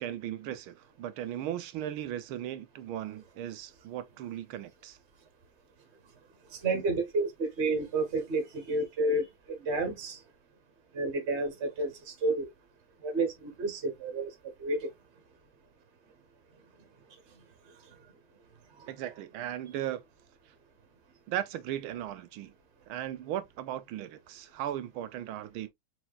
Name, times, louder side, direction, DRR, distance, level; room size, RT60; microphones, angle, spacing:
voice 1, 0.0-5.0 18.9-20.0 21.3-22.5 22.9-25.7, right 11 dB, 75° right, 1.5 m, -37 dB
voice 2, 6.6-10.2 10.9-12.5 13.0-14.3 14.6-14.9, right 2 dB, 35° right, 1.5 m, -30 dB
4.6 x 4.3 x 2.4 m
omnidirectional pair, 2.4 m